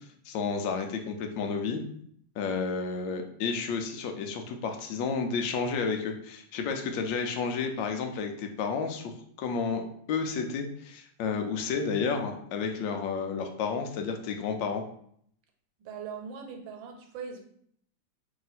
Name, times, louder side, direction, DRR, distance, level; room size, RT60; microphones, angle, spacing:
voice 1, 0.2-1.8 2.4-14.8, left 5 dB, 80° left, 5 dB, 1.3 m, -31 dB
voice 2, 15.8-17.4, right 6 dB, 85° right, 3 dB, 1.4 m, -40 dB
3.1 x 2.8 x 4.0 m, 0.65 s
omnidirectional pair, 2.1 m